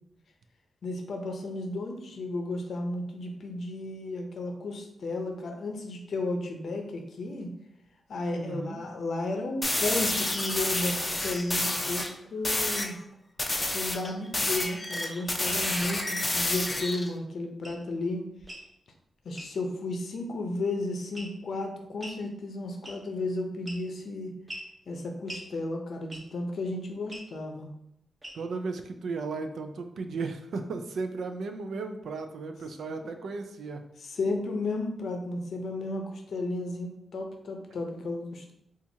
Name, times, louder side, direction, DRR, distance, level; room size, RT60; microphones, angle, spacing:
voice 1, 0.8-7.5 8.1-13.0 13.7-18.2 19.2-24.3 24.9-27.7 34.1-38.5, left 2 dB, 70° left, 3 dB, 0.6 m, -33 dB
voice 2, 8.4-8.8 28.3-33.8, right 4 dB, 80° right, 7 dB, 0.4 m, -35 dB
sound 1, 9.6-12.1 12.4-12.9 13.4-17.1, left 1 dB, 20° left, 0.5 m, -29 dB
sound 2, 17.6-17.8 18.4-18.7 19.4-19.5 21.2-21.5 22.0-22.2 22.8-23.2 23.7-24.0 24.5-24.7 25.3-25.5 26.1-26.4 27.1-27.3 28.2-28.6, right 1 dB, 25° right, 0.8 m, -42 dB
4.3 x 2.4 x 2.7 m, 0.78 s
wide cardioid pair, 100°, 0 cm